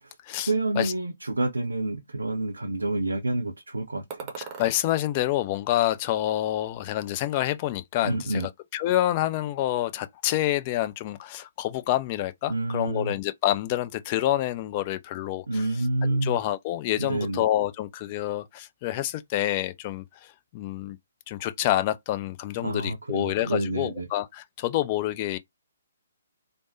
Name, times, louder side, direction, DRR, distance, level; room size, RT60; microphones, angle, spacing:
voice 1, 0.5-4.3 8.0-8.5 12.5-13.2 15.5-16.4 17.0-17.4 22.6-24.1, right 2 dB, 70° right, 0.5 m, -28 dB
sound 1, 4.1-4.8 5.3-6.3 6.6-7.4, right 6 dB, 20° right, 0.8 m, -43 dB
voice 2, 4.4-8.4 8.7-15.6 16.0-21.0 21.3-25.4, left 14 dB, 30° left, 0.3 m, -27 dB
3.2 x 2.0 x 2.6 m
figure-of-eight pair, 130°, 0 cm